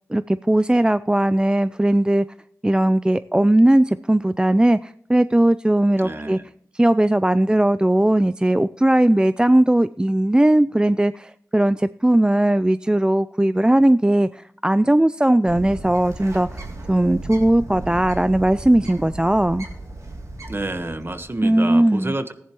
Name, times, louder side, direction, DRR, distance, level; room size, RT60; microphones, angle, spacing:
voice 1, 0.1-2.3 2.6-6.4 6.7-16.6 16.9-19.7 21.4-22.1, right 1 dB, 15° right, 14 dB, 0.4 m, -18 dB
voice 2, 6.0-6.4 20.5-22.3, right 2 dB, 40° right, 9 dB, 1.3 m, -29 dB
Bird, 15.5-21.4, right 2 dB, 60° right, 2.8 m, -36 dB
15.0 x 10.5 x 3.1 m, 0.68 s
cardioid pair, 40°, 6 cm